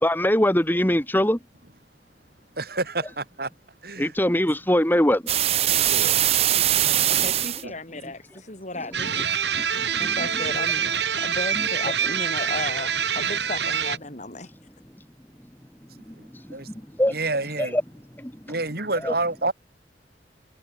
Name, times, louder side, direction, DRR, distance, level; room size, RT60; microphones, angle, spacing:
voice 1, 0.0-1.4 4.0-5.3 6.0-6.2 6.6-7.3 9.6-10.5 16.1-17.2 17.6-17.8 18.2-18.5 19.0-19.1, left 1 dB, 10° left, 2.1 m, -24 dB
voice 2, 2.6-3.5 3.8-4.1 5.9-6.2 7.6-7.7 16.2-16.3 16.5-16.7 17.1-17.8 18.5-19.5, right 2 dB, 60° right, 5.8 m, -28 dB
sound 1, 5.3-7.6, right 11 dB, 35° right, 0.5 m, -21 dB
voice 3, 7.1-9.3 10.0-14.5, left 2 dB, 40° left, 7.0 m, -35 dB
sound 2, 8.9-14.0, right 7 dB, 80° right, 4.4 m, -25 dB
head